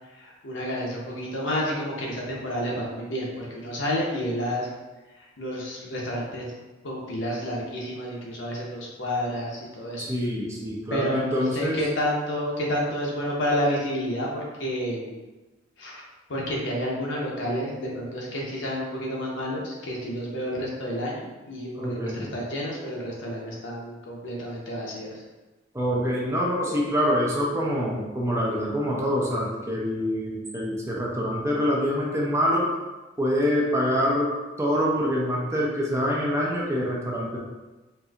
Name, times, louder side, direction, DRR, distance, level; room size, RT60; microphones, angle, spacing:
voice 1, 0.1-4.7 5.1-6.5 6.8-10.1 10.9-15.1 15.8-16.0 16.3-25.2, equal, 65° left, -3 dB, 0.8 m, -30 dB
voice 2, 10.0-11.8 21.8-22.3 25.7-32.7 33.2-37.4, equal, 15° right, -4 dB, 0.5 m, -25 dB
4.2 x 2.6 x 2.4 m, 1.2 s
head